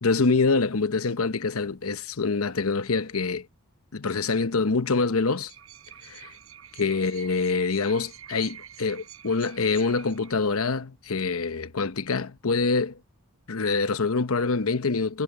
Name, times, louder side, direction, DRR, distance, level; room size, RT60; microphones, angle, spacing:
voice 1, 0.0-3.5 3.9-5.5 6.1-6.3 6.8-13.0 13.5-15.2, left 4 dB, 85° left, 0.9 m, -25 dB
Creaking Metal - Eerie, 5.3-10.6, right 10 dB, 80° right, 4.9 m, -47 dB
head